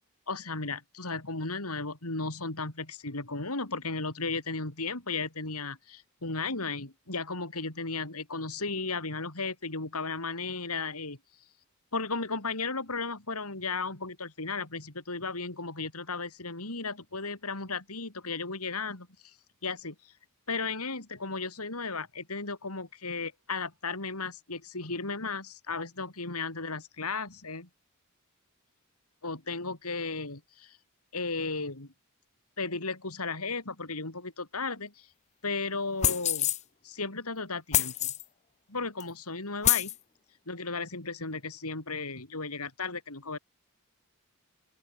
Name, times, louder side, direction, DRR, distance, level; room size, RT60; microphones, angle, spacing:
voice 1, 0.3-11.2 11.9-19.3 19.6-20.1 20.5-27.7 29.2-30.8 31.1-31.9 32.6-35.1 35.4-36.5 36.8-38.1 38.7-39.9 40.5-43.4, left 4 dB, 85° left, 4.1 m, -35 dB
sound 1, 36.0-36.6 37.7-38.2 39.0-39.1 39.6-39.9, left 11 dB, 30° left, 0.5 m, -26 dB
open air
head